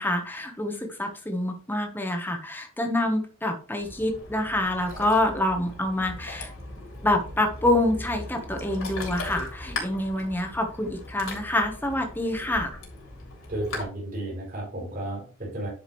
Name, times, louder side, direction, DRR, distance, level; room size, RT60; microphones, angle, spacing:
voice 1, 0.0-6.5 7.0-12.8, left 1 dB, 10° left, 3 dB, 1.2 m, -27 dB
Ocean, 3.8-13.8, left 2 dB, 85° left, 3.5 m, -39 dB
voice 2, 13.5-15.7, right 1 dB, 40° right, -4 dB, 4.2 m, -33 dB
10.0 x 5.1 x 3.2 m, 0.40 s
head